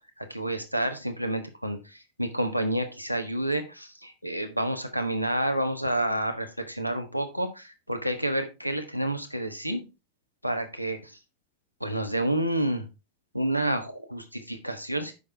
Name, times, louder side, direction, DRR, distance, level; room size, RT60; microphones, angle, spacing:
voice 1, 0.2-9.9 10.4-11.2 11.8-12.9 13.3-15.1, right 1 dB, 90° left, 8 dB, 1.4 m, -29 dB
9.1 x 6.3 x 3.4 m, 0.27 s
figure-of-eight pair, 90°, 0 cm